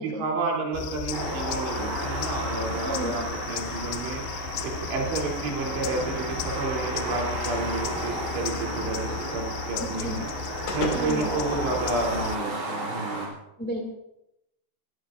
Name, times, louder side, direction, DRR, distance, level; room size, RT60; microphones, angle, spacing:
voice 1, 0.0-10.3 10.7-13.3, right 3 dB, 75° right, -2 dB, 5.6 m, -31 dB
sound 1, 0.7-12.4, left 10 dB, 90° left, 2.0 m, -36 dB
sound 2, 1.1-13.3, right 2 dB, 45° right, 4.8 m, -33 dB
voice 2, 2.8-3.2 10.0-10.2 10.9-11.3 13.6-13.8, equal, 5° left, 1 dB, 1.5 m, -32 dB
sound 3, 8.1-12.5, left 4 dB, 75° left, 4.5 m, -39 dB
24.0 x 18.5 x 2.6 m, 0.86 s
omnidirectional pair, 5.0 m